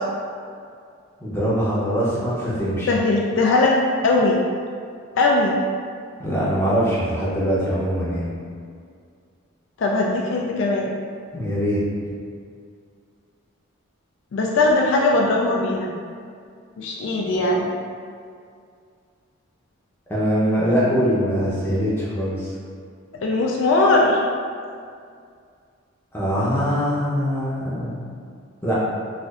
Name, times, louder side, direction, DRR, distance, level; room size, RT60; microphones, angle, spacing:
voice 1, 1.2-2.9 6.2-8.3 11.3-11.8 20.1-22.5 26.1-28.0 28.6-28.7, equal, 10° left, -9 dB, 0.7 m, -22 dB
voice 2, 2.9-4.4 5.2-5.6 9.8-10.9 14.3-15.9 16.8-17.7 23.2-24.2, left 2 dB, 60° left, -1 dB, 0.3 m, -19 dB
4.2 x 2.5 x 2.4 m, 2.2 s
head